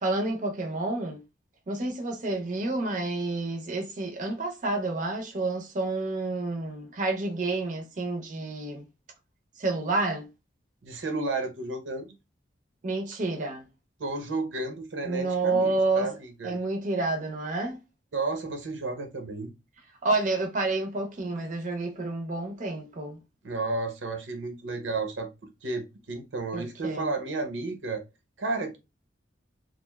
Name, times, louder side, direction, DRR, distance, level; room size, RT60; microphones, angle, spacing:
voice 1, 0.0-1.2 1.7-8.8 9.6-10.3 12.8-13.7 15.0-16.1 16.4-17.8 20.0-23.2 26.5-27.1, right 2 dB, 45° right, 0.5 m, -29 dB
voice 2, 10.8-12.1 14.0-16.5 18.1-19.5 23.4-25.3 25.6-28.0 28.4-28.8, right 3 dB, 90° right, 0.7 m, -32 dB
3.1 x 2.4 x 2.2 m
head